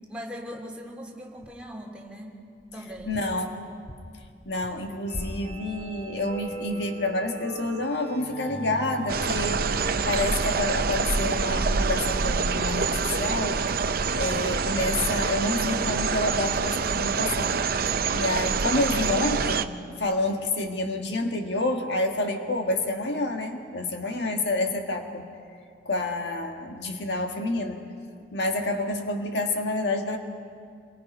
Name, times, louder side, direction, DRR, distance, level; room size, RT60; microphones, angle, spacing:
voice 1, 0.1-2.4 2.7-3.2, equal, 5° right, -1 dB, 3.2 m, -40 dB
sound 1, 1.4-1.9 2.6-7.1 7.5-7.7 8.0-8.1 8.6-8.7 8.9-9.0 9.3-10.4 11.0-11.9, equal, 20° left, 2.5 m, -44 dB
voice 2, 3.1-3.6 4.5-13.7 14.1-17.6 18.1-25.3 25.9-27.8 28.3-30.2, left 2 dB, 75° left, 3 dB, 1.8 m, -28 dB
sound 2, 5.1-10.4, right 1 dB, 45° left, 2.8 m, -40 dB
sound 3, 9.1-19.6, right 5 dB, 55° right, 0.6 m, -26 dB
28.0 x 23.0 x 5.5 m, 2.3 s
head